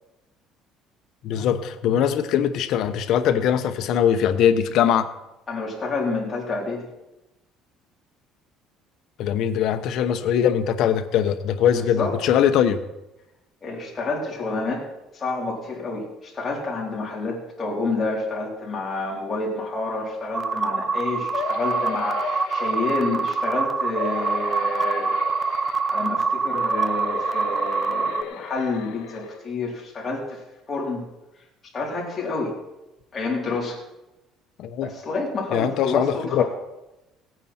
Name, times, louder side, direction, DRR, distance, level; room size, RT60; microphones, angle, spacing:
voice 1, 1.2-5.1 9.2-12.8 34.6-34.9 35.5-36.4, left 9 dB, 60° left, 8 dB, 1.0 m, -21 dB
voice 2, 5.5-6.9 11.7-12.1 13.6-14.8 15.1-25.1 25.9-30.4 30.7-31.1 31.7-32.5 33.1-33.8 34.8-36.4, left 3 dB, 20° left, -4 dB, 3.8 m, -29 dB
sound 1, 20.3-28.2, right 4 dB, 20° right, 0.5 m, -25 dB
sound 2, 21.3-23.5 23.9-26.1 26.5-29.4 29.9-30.0 30.3-30.4, left 7 dB, 75° left, 1.5 m, -35 dB
17.0 x 9.2 x 4.4 m, 0.95 s
cardioid pair, 150°, 0 cm